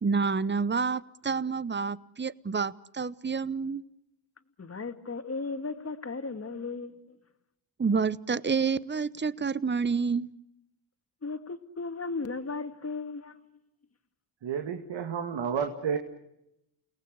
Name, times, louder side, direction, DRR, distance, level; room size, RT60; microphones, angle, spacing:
voice 1, 0.0-3.8 7.8-10.3, right 5 dB, 25° right, 1.0 m, -28 dB
voice 2, 4.6-7.2 11.2-13.4, left 4 dB, 30° left, 2.4 m, -36 dB
voice 3, 14.4-16.0, right 7 dB, 65° right, 2.3 m, -31 dB
30.0 x 18.5 x 8.3 m
cardioid pair, 70°, 47 cm